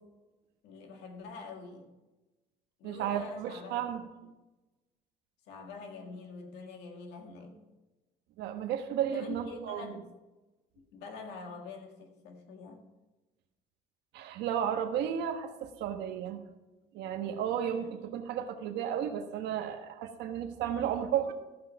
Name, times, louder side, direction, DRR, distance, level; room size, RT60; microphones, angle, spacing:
voice 1, 0.6-1.9 2.8-3.9 5.5-7.6 9.1-10.1 10.8-12.8 17.8-17.9, left 4 dB, 85° left, 3 dB, 2.0 m, -45 dB
voice 2, 2.8-4.0 8.4-9.9 14.1-16.4 16.9-21.3, right 9 dB, 85° right, 6 dB, 1.3 m, -33 dB
14.5 x 5.9 x 5.8 m, 1.1 s
cardioid pair, 110°, 17 cm